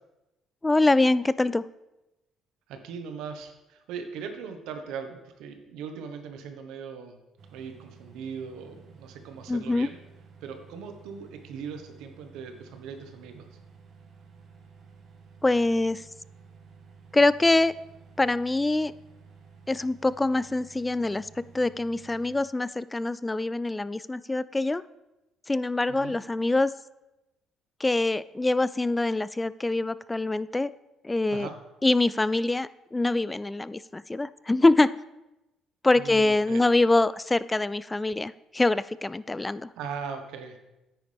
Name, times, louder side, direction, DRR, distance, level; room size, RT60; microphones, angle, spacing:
voice 1, 0.6-1.6 9.5-9.9 15.4-16.0 17.1-17.7 18.2-18.9 19.7-21.3 21.5-24.8 25.5-26.7 27.8-30.7 31.0-31.5 31.8-34.9 35.8-39.7, left 2 dB, 15° left, 18 dB, 0.3 m, -24 dB
voice 2, 2.7-7.2 7.5-10.0 10.4-13.5 25.9-26.2 31.3-31.5 35.9-36.6 39.8-40.6, right 6 dB, 80° right, 6 dB, 1.2 m, -39 dB
sound 1, 7.4-22.4, right 5 dB, 55° right, 1.6 m, -53 dB
9.4 x 9.2 x 3.4 m, 0.96 s
supercardioid pair, 75°, 0 cm